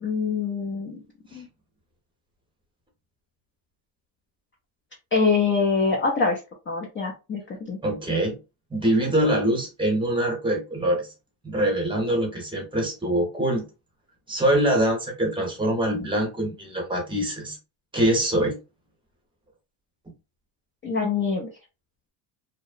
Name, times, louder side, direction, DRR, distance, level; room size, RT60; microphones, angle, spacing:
voice 1, 0.0-1.0 1.3-1.5 5.1-6.4 6.7-7.4 7.7-7.8 20.8-21.5, left 4 dB, 30° left, 0.4 m, -24 dB
voice 2, 7.8-8.4 8.7-11.1 11.4-13.6 14.3-17.6 17.9-18.5, right 1 dB, 10° right, 0.8 m, -24 dB
2.7 x 2.0 x 2.3 m
cardioid pair, 150°, 46 cm